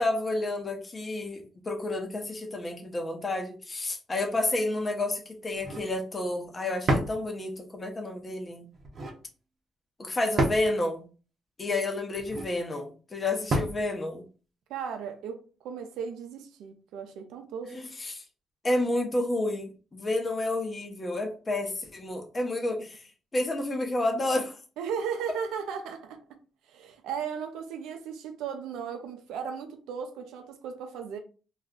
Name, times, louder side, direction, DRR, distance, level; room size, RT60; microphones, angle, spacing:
voice 1, 0.0-8.7 10.0-11.1 11.6-14.2 17.7-18.2 18.6-23.0 23.3-24.6, left 2 dB, 30° left, 0.8 m, -30 dB
sound 1, 5.5-5.9 6.9-7.2 8.7-9.2 10.4-10.7 12.1-12.5 13.5-13.8, right 1 dB, 50° right, 0.7 m, -28 dB
voice 2, 14.7-17.7 24.8-26.2 26.7-31.2, right 7 dB, 90° right, 0.5 m, -36 dB
2.4 x 2.2 x 3.6 m
cardioid pair, 90°, 0 cm